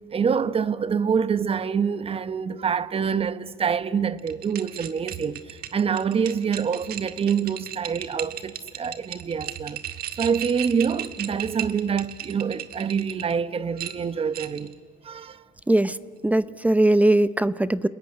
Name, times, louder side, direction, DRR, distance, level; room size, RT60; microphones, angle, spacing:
voice 1, 0.1-9.9 10.2-14.7 15.0-15.4, right 6 dB, 35° right, 0.9 m, -26 dB
sound 1, 4.2-13.3 13.8-14.7, right 11 dB, 65° right, 1.8 m, -36 dB
voice 2, 16.2-17.9, right 1 dB, 10° right, 0.7 m, -20 dB
29.5 x 20.0 x 9.8 m
cardioid pair, 110°, 17 cm